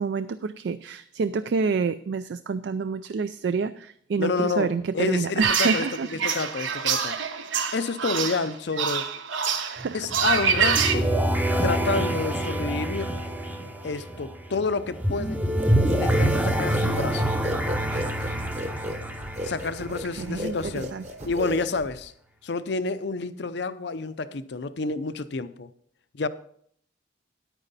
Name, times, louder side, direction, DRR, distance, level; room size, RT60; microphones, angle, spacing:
voice 1, 0.0-6.1 9.6-10.1 17.9-18.0 20.1-21.0, right 5 dB, 65° right, 0.3 m, -28 dB
voice 2, 4.2-5.9 6.1-7.2 7.7-9.1 9.9-11.2 11.6-13.1 13.8-15.4 15.8-17.3 19.4-20.9 21.2-22.1 22.4-25.7 26.1-26.3, left 4 dB, 60° left, 0.6 m, -29 dB
sound 1, 5.4-10.9, right 7 dB, 80° right, 1.0 m, -26 dB
sound 2, 9.8-20.5, right 1 dB, 10° right, 0.6 m, -26 dB
sound 3, 15.6-22.1, equal, 35° right, 1.0 m, -35 dB
10.0 x 9.1 x 4.1 m
head